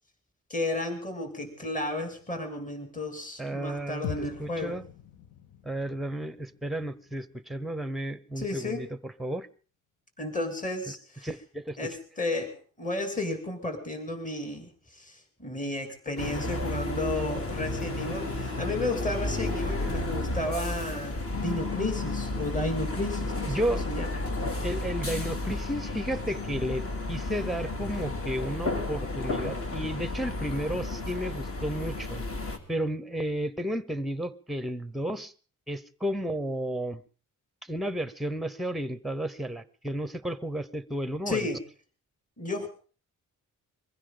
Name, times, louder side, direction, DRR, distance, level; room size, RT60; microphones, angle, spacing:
voice 1, 0.5-4.8 8.4-8.9 10.2-11.3 11.8-23.6 23.9-24.1 41.3-41.6 42.4-42.7, left 2 dB, 25° left, 5 dB, 2.8 m, -33 dB
voice 2, 3.4-4.8 5.6-9.5 10.9-11.0 11.2-11.9 23.4-23.8 24.6-32.2 32.7-35.3 35.7-37.0 37.6-41.5, right 1 dB, ahead, 15 dB, 0.8 m, -33 dB
sound 1, 4.0-8.4, left 9 dB, 75° left, 1.0 m, -43 dB
sound 2, 16.2-32.6, left 2 dB, 45° left, 2.5 m, -32 dB
22.5 x 15.5 x 3.8 m, 0.39 s
wide cardioid pair, 140°, 32 cm